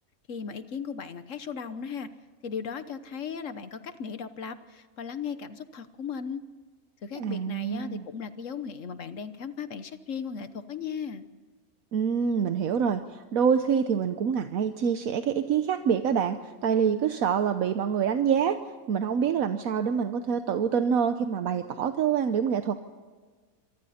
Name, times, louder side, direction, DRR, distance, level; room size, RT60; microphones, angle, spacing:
voice 1, 0.3-2.1 2.4-6.4 7.0-11.2, left 6 dB, 60° left, 11 dB, 1.4 m, -36 dB
voice 2, 7.2-8.0 11.9-18.6 18.9-22.8, right 7 dB, 75° right, 8 dB, 1.3 m, -26 dB
26.0 x 24.0 x 4.3 m, 1.5 s
omnidirectional pair, 1.5 m